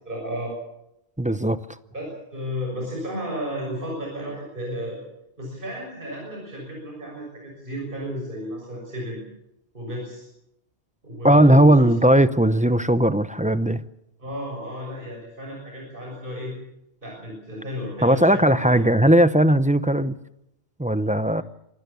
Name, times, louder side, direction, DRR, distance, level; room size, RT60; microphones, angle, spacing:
voice 1, 0.1-0.5 1.9-5.0 5.4-9.2 9.7-10.3 11.0-11.9 14.2-16.5 17.0-18.8, equal, 55° right, -2 dB, 7.1 m, -33 dB
voice 2, 1.2-1.6 11.2-13.8 18.0-20.1 20.8-21.4, right 1 dB, 10° right, 12 dB, 0.6 m, -17 dB
26.5 x 17.5 x 7.0 m, 0.85 s
omnidirectional pair, 1.1 m